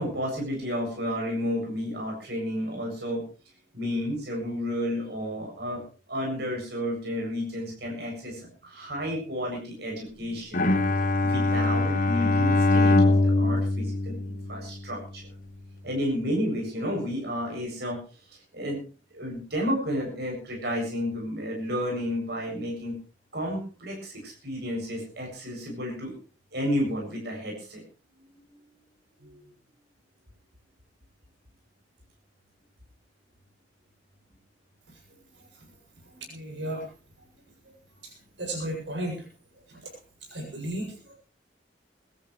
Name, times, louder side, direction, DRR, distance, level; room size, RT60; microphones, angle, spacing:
voice 1, 0.0-3.2 3.7-5.8 6.1-10.7 11.2-15.2 15.8-18.0 18.5-18.8 19.1-23.0 23.3-26.1 26.5-27.8 29.2-29.5, equal, 65° right, 0 dB, 7.7 m, -31 dB
Bowed string instrument, 10.5-14.9, left 2 dB, 50° left, 1.2 m, -23 dB
voice 2, 36.3-36.9 38.0-39.3 39.7-39.8 40.3-41.1, right 1 dB, 80° right, 0 dB, 7.7 m, -34 dB
23.5 x 13.5 x 3.3 m, 0.37 s
head